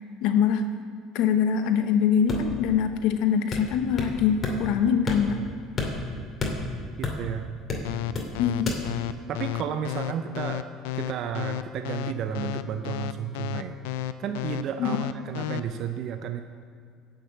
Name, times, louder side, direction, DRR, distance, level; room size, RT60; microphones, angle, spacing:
voice 1, 0.2-0.6 1.1-5.4 8.4-8.7 14.8-15.1, left 7 dB, 70° left, 8 dB, 0.9 m, -23 dB
sound 1, 2.3-2.7 3.5-4.2 4.4-4.6 5.1-5.5 5.8-7.3 7.7-8.3 8.7-8.8, left 3 dB, 35° left, 2.5 m, -30 dB
voice 2, 7.0-7.5 9.3-10.6 10.9-13.8 14.2-16.4, right 8 dB, 55° right, 7 dB, 0.6 m, -32 dB
sound 2, 7.8-15.6, left 13 dB, 90° left, 0.4 m, -31 dB
11.5 x 6.7 x 8.5 m, 2.2 s
supercardioid pair, 100°, 0 cm